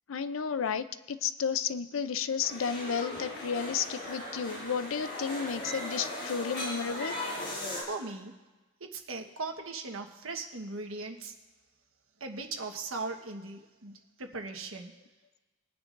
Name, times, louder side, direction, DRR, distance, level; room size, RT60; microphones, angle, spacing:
voice 1, 0.1-7.1, left 6 dB, 80° left, 11 dB, 0.5 m, -32 dB
sound 1, 2.4-7.8, left 1 dB, 50° left, 4.1 m, -38 dB
voice 2, 7.9-8.3 8.8-11.3 12.2-14.9, right 3 dB, 85° right, 4 dB, 1.3 m, -39 dB
22.0 x 9.6 x 2.6 m, 1.1 s
head